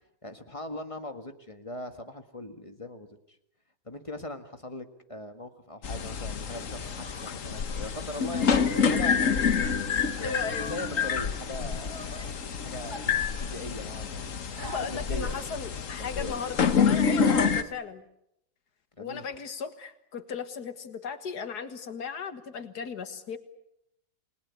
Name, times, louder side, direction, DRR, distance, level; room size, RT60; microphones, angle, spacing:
voice 1, 0.2-3.4 3.9-12.4 12.6-14.3 14.7-15.3 16.0-16.4 19.0-19.3, left 2 dB, 20° left, 7 dB, 1.7 m, -41 dB
sound 1, 5.8-17.6, left 6 dB, 55° left, 1.5 m, -28 dB
sound 2, 6.6-9.8 10.2-12.3 12.9-13.9 14.6-15.6, right 1 dB, 15° right, 1.7 m, -47 dB
voice 2, 10.2-10.7 14.5-18.0 19.0-23.4, left 5 dB, 75° left, 10 dB, 2.1 m, -36 dB
29.0 x 20.5 x 8.4 m, 0.78 s
omnidirectional pair, 1.7 m